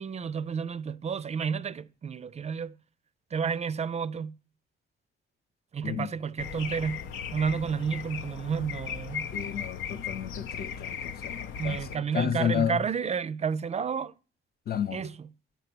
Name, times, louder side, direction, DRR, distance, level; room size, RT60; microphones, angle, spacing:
voice 1, 0.0-2.8 3.3-4.4 5.7-7.0 7.3-9.3 11.5-14.1 14.9-15.3, right 6 dB, 35° right, 0.4 m, -31 dB
sound 1, 6.4-12.0, left 7 dB, 85° left, 0.8 m, -37 dB
voice 2, 9.3-12.8 14.7-15.0, left 9 dB, 50° left, 0.7 m, -31 dB
10.0 x 6.6 x 6.0 m
cardioid pair, 90°, 20 cm